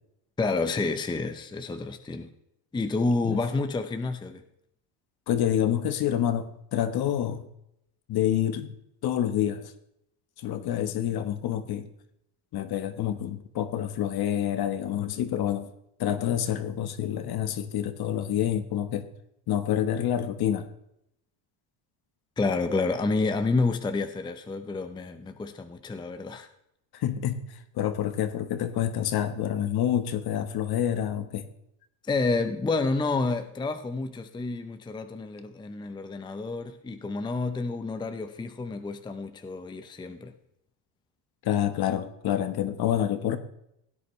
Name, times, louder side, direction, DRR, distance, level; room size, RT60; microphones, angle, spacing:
voice 1, 0.4-2.3 2.7-4.4 22.4-26.5 32.1-40.3, left 3 dB, 10° left, 0.6 m, -29 dB
voice 2, 5.3-7.5 8.1-8.7 9.0-9.7 10.4-11.9 12.5-15.7 16.0-19.0 19.5-20.7 26.9-27.4 27.7-31.5 41.4-43.4, left 10 dB, 50° left, 1.3 m, -27 dB
16.5 x 9.8 x 3.2 m
cardioid pair, 130°, 47 cm